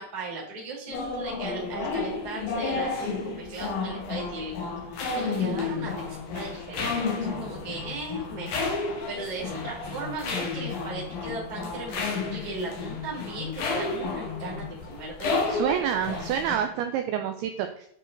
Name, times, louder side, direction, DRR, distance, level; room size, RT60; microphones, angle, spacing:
voice 1, 0.0-16.2, right 2 dB, 20° right, -4 dB, 1.1 m, -37 dB
sound 1, 0.9-16.6, left 4 dB, 65° left, 3.0 m, -31 dB
voice 2, 15.5-17.9, right 9 dB, 90° right, 7 dB, 2.2 m, -28 dB
8.9 x 4.9 x 3.9 m, 0.69 s
omnidirectional pair, 5.1 m